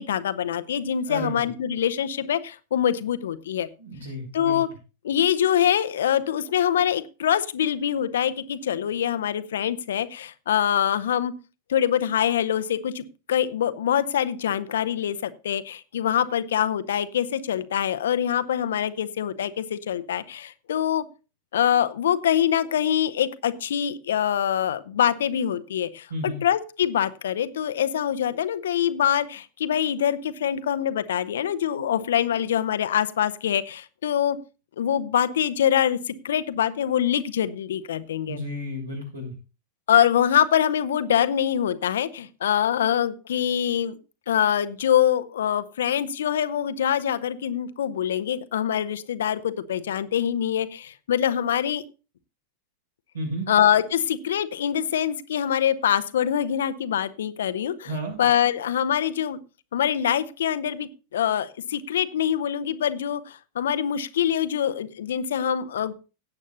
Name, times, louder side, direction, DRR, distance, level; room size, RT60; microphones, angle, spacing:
voice 1, 0.0-3.7 4.3-4.7 5.0-11.3 11.7-21.0 21.5-34.4 34.8-38.4 39.9-44.0 44.3-51.8 53.5-59.4 59.7-65.9, left 9 dB, 60° left, 14 dB, 0.8 m, -24 dB
voice 2, 1.1-1.5 3.8-4.6 26.1-26.4 38.3-39.3 53.1-53.5 57.8-58.2, equal, 75° right, 1 dB, 6.4 m, -32 dB
17.5 x 8.5 x 2.7 m, 0.31 s
figure-of-eight pair, 90°, 0 cm